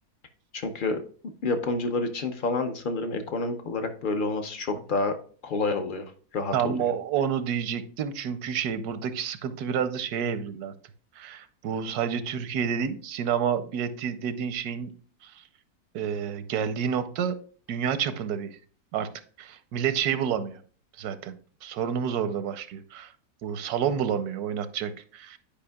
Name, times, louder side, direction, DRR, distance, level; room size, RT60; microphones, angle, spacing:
voice 1, 0.5-1.0 1.4-5.2 5.4-6.9, left 3 dB, 60° left, 7 dB, 0.5 m, -29 dB
voice 2, 6.5-10.7 11.2-14.9 15.2-15.4 15.9-17.4 17.7-18.6 18.9-19.1 19.4-20.6 21.0-21.3 21.6-23.1 23.4-25.4, right 8 dB, 85° right, 12 dB, 1.1 m, -29 dB
10.5 x 5.1 x 2.2 m, 0.43 s
omnidirectional pair, 1.7 m